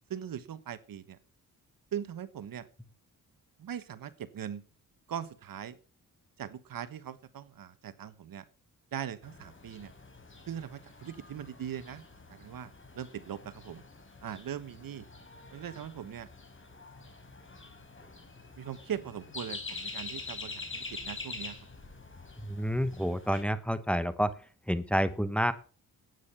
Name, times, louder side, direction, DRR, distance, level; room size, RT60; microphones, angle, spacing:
voice 1, 0.1-1.2 1.9-2.7 3.6-4.6 5.1-5.8 6.4-8.4 8.9-9.9 10.5-12.0 12.3-13.8 14.2-15.1 15.5-16.3 18.6-21.6, right 9 dB, 65° right, 14 dB, 1.3 m, -40 dB
sound 1, 9.2-23.4, left 3 dB, 35° left, 4.9 m, -46 dB
voice 2, 22.4-24.3 24.7-25.5, equal, 5° left, 12 dB, 1.2 m, -29 dB
11.5 x 9.4 x 5.8 m, 0.38 s
cardioid pair, 65°, 36 cm